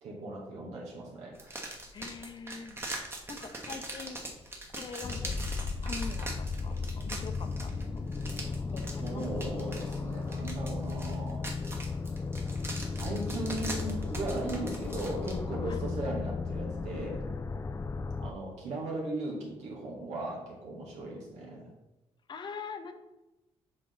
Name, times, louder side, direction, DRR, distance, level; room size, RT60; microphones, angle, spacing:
voice 1, 0.0-1.6 9.0-11.5 12.9-17.2 18.2-21.7, right 2 dB, 85° right, -2 dB, 2.3 m, -38 dB
sound 1, 1.3-15.4, right 2 dB, 20° right, 1.2 m, -42 dB
voice 2, 1.9-2.8 3.3-4.2 4.7-6.3 6.6-8.0 8.7-9.8 15.6-15.8 22.3-22.9, left 5 dB, 40° left, 8 dB, 0.7 m, -43 dB
sound 2, 5.0-18.3, left 4 dB, 25° left, 0.3 m, -35 dB
7.6 x 5.1 x 4.0 m, 1.0 s
cardioid pair, 120°, 11 cm